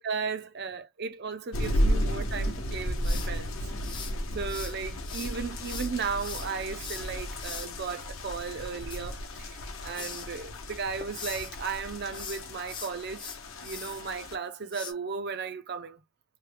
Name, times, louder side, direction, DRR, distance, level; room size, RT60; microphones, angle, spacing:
voice 1, 0.0-3.6 4.3-9.6 9.8-13.3 13.6-16.0, right 5 dB, 50° right, 0.5 m, -35 dB
sound 1, 1.5-14.4, equal, 70° left, 0.8 m, -33 dB
sound 2, 3.0-4.7 5.0-7.7 8.7-9.6 9.9-10.3 10.7-11.5 12.0-14.0 14.7-14.9, left 6 dB, 20° left, 0.5 m, -41 dB
3.1 x 2.2 x 3.2 m
head